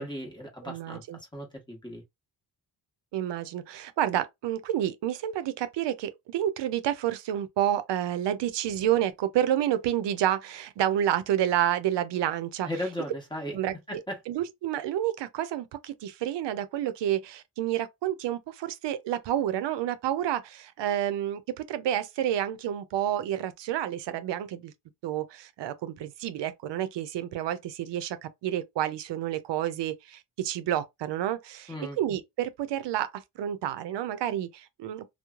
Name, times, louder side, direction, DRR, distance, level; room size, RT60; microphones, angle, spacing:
voice 1, 0.0-2.0 12.6-13.6 13.9-14.2 31.7-32.0, left 1 dB, 10° left, 1.0 m, -36 dB
voice 2, 0.6-1.2 3.1-12.7 13.5-14.0 14.3-24.7 25.0-35.0, right 11 dB, 80° right, 0.5 m, -29 dB
3.0 x 2.0 x 2.3 m
wide cardioid pair, 120°, 42 cm